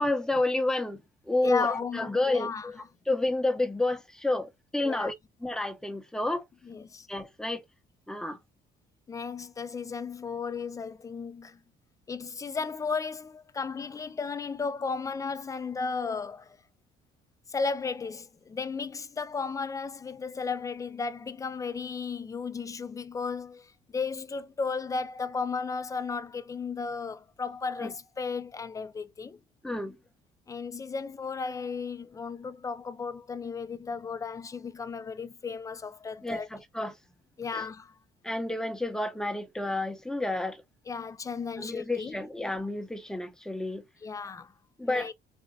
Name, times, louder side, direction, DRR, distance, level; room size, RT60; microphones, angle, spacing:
voice 1, 0.0-2.7 3.1-5.1 5.4-6.4 7.1-7.6 8.1-8.4 27.8-27.9 29.6-30.0 36.2-37.0 37.5-37.6 38.2-40.6 41.6-43.8 44.8-45.1, left 2 dB, 5° left, 0.8 m, -30 dB
voice 2, 1.4-2.7 4.8-5.1 6.6-7.1 9.1-11.6 12.1-16.6 17.5-29.4 30.5-36.5 37.4-38.0 40.9-42.2 44.0-44.5 44.8-45.1, left 5 dB, 20° left, 0.4 m, -34 dB
4.1 x 2.5 x 2.6 m
cardioid pair, 110°, 17 cm